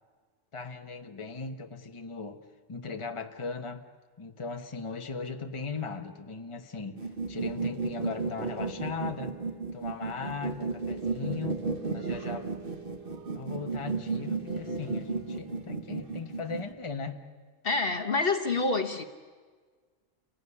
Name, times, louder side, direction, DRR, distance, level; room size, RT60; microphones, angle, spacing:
voice 1, 0.5-2.4 2.7-3.8 4.2-7.0 7.3-9.3 9.7-11.6 11.9-12.4 13.3-17.3, left 5 dB, 25° left, 4 dB, 1.3 m, -38 dB
sound 1, 7.0-16.7, right 4 dB, 45° right, 1.7 m, -34 dB
voice 2, 17.6-19.0, left 3 dB, 45° left, 5 dB, 1.4 m, -27 dB
30.0 x 18.0 x 9.8 m, 1.5 s
omnidirectional pair, 1.3 m